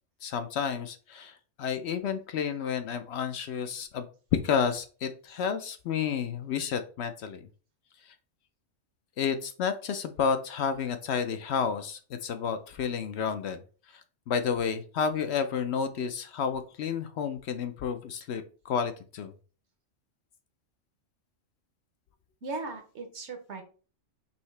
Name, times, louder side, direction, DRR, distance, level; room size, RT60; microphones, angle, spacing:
voice 1, 0.2-4.1 4.4-7.4 8.1-8.2 9.2-13.6 14.3-19.3, left 6 dB, 65° left, 9 dB, 0.7 m, -31 dB
voice 2, 22.4-23.6, right 3 dB, 60° right, 5 dB, 1.2 m, -37 dB
5.5 x 2.8 x 3.2 m, 0.37 s
omnidirectional pair, 1.4 m